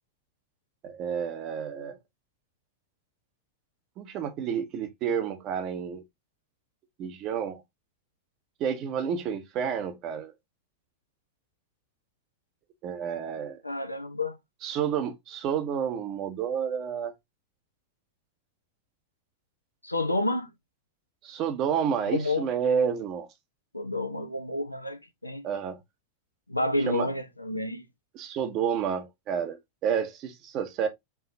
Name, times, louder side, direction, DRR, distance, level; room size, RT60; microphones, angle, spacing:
voice 1, 0.8-2.0 4.0-6.0 7.0-7.6 8.6-10.3 12.8-13.6 14.6-17.1 21.2-23.3 25.4-25.8 26.9-27.1 28.1-30.9, right 7 dB, 35° right, 0.9 m, -30 dB
voice 2, 13.6-14.4 19.8-20.5 22.1-22.5 23.7-25.4 26.5-27.8, left 2 dB, 85° left, 0.7 m, -30 dB
4.6 x 3.0 x 2.8 m
figure-of-eight pair, 90°, 0 cm